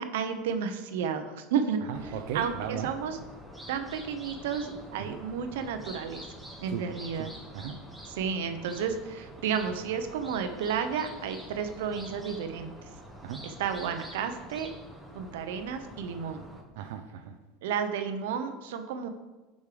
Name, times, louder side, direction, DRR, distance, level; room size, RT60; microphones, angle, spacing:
voice 1, 0.0-1.8 2.3-3.2 3.7-6.2 6.6-7.3 8.1-12.7 13.4-14.7 15.1-16.4 17.6-19.1, right 7 dB, 90° right, 8 dB, 0.9 m, -32 dB
voice 2, 1.8-2.9 5.0-5.2 6.7-6.9 7.2-7.8 13.2-13.5 16.8-17.4, right 9 dB, 70° right, 4 dB, 0.6 m, -37 dB
sound 1, 1.9-16.6, equal, ahead, 1.0 m, -46 dB
9.6 x 5.4 x 5.1 m, 1.2 s
supercardioid pair, 165°, 0 cm